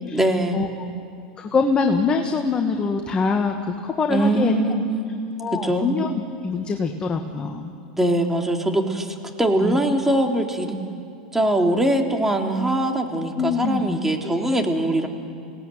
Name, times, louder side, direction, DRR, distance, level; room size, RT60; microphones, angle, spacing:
voice 1, 0.1-0.6 4.1-5.1 5.5-5.9 8.0-10.8 11.3-15.1, right 1 dB, 10° right, 2 dB, 3.4 m, -22 dB
voice 2, 1.4-4.5 5.4-6.1 6.4-7.7 9.6-9.8 13.3-14.6, left 4 dB, 25° left, 4 dB, 2.1 m, -24 dB
30.0 x 18.0 x 9.3 m, 2.5 s
hypercardioid pair, 90°, 4 cm